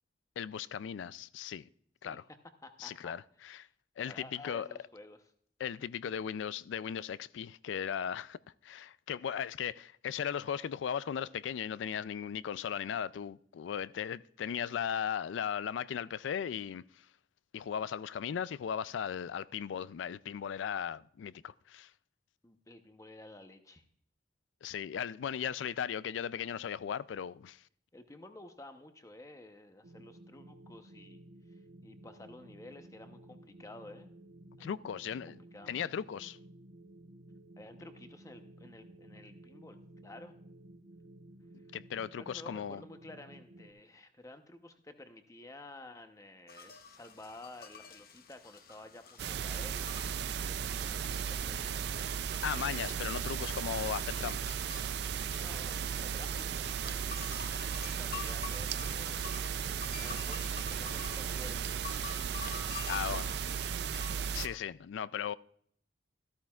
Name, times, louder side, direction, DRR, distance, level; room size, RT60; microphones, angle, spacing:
voice 1, 0.4-1.6 2.0-2.2 2.8-3.7 4.0-4.7 5.6-8.4 8.6-16.8 17.5-21.9 24.6-27.6 34.6-35.4 35.7-36.4 41.7-42.8 52.4-54.6 62.9-63.2 64.3-65.3, left 8 dB, 85° left, 0.3 m, -37 dB
voice 2, 2.6-3.1 4.0-5.3 22.4-23.8 27.9-31.2 31.8-34.1 34.6-34.8 35.1-35.8 37.6-39.8 40.0-40.3 42.2-52.1 53.2-53.3 55.4-59.2 60.0-62.1 62.6-63.4, left 2 dB, 20° left, 0.8 m, -52 dB
sound 1, 29.8-43.7, right 1 dB, 90° right, 1.1 m, -54 dB
sound 2, 46.5-64.6, left 6 dB, 55° left, 0.9 m, -49 dB
sound 3, 49.2-64.5, right 7 dB, 60° right, 0.4 m, -36 dB
13.5 x 13.0 x 2.4 m
head